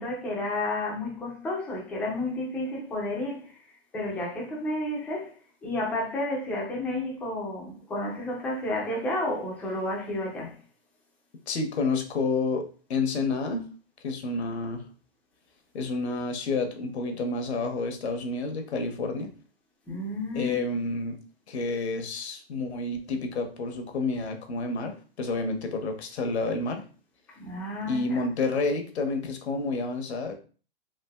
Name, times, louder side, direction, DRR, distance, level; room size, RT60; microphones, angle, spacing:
voice 1, 0.0-3.6 3.9-5.4 5.6-10.6 19.9-20.6 27.3-28.2, left 1 dB, 5° left, 0.3 m, -31 dB
voice 2, 11.5-13.7 14.0-14.9 15.7-19.3 20.3-21.2 21.5-26.8 27.9-30.3, left 3 dB, 80° left, 0.8 m, -29 dB
3.4 x 2.5 x 2.2 m
hypercardioid pair, 135°, 32 cm